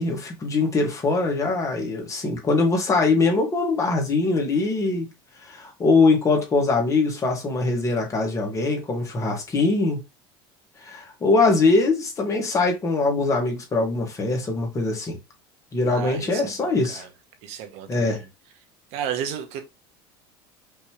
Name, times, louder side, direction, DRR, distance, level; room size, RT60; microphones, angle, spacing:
voice 1, 0.0-5.1 5.4-10.0 10.8-15.2 15.7-17.1 17.9-18.2, left 3 dB, 25° left, 1.9 m, -22 dB
voice 2, 15.9-17.1 17.4-18.3 18.9-19.7, right 9 dB, 60° right, 1.2 m, -33 dB
5.4 x 3.2 x 3.1 m
supercardioid pair, 120°, 12 cm